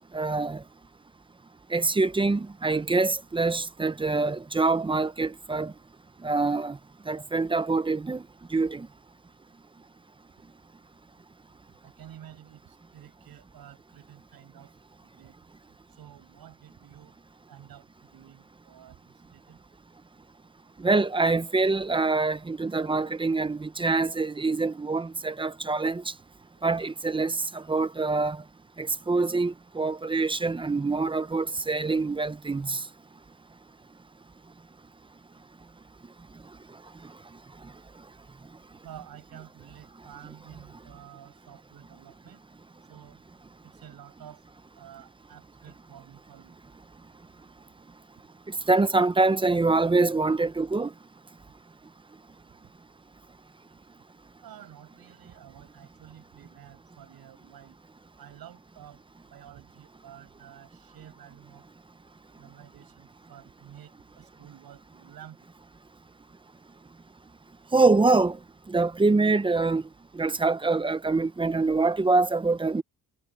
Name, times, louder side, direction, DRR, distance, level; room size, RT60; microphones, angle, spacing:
voice 1, 0.1-0.6 1.7-5.7 6.2-6.8 7.1-8.2 8.5-8.9 20.8-26.0 26.6-28.4 28.8-32.8 48.7-50.9 67.7-68.4 68.7-69.8 70.2-72.8, right 3 dB, 15° right, 0.5 m, -25 dB
voice 2, 11.8-14.7 15.0-15.4 15.9-17.1 17.5-19.6 26.6-26.8 38.8-42.4 42.8-43.2 43.6-44.4 44.8-46.6 54.4-57.8 58.2-59.0 59.3-61.6 62.4-65.5, right 11 dB, 70° right, 7.4 m, -50 dB
cardioid pair, 160°, 37 cm